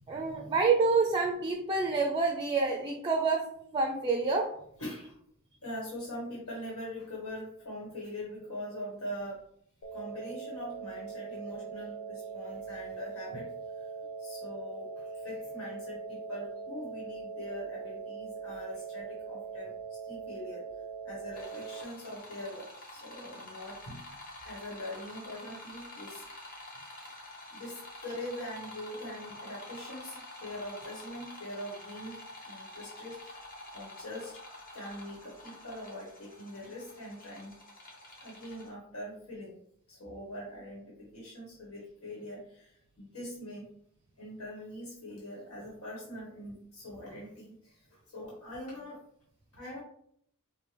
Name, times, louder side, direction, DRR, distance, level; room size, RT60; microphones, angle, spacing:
voice 1, 0.1-3.4 3.7-4.5, right 4 dB, 25° right, 2 dB, 0.4 m, -27 dB
voice 2, 4.8-5.2 5.6-9.4 9.9-13.9 14.2-20.7 21.0-24.0 24.4-26.3 27.0-32.2 32.4-33.4 33.7-34.4 34.7-37.5 38.2-39.5 39.9-43.7 44.2-49.0 49.5-49.8, left 1 dB, 90° left, -4 dB, 1.2 m, -43 dB
sound 1, 9.8-21.8, right 5 dB, 70° left, 0.7 m, -41 dB
sound 2, 21.3-38.7, left 1 dB, 45° left, 1.0 m, -48 dB
4.3 x 2.2 x 3.3 m, 0.67 s
head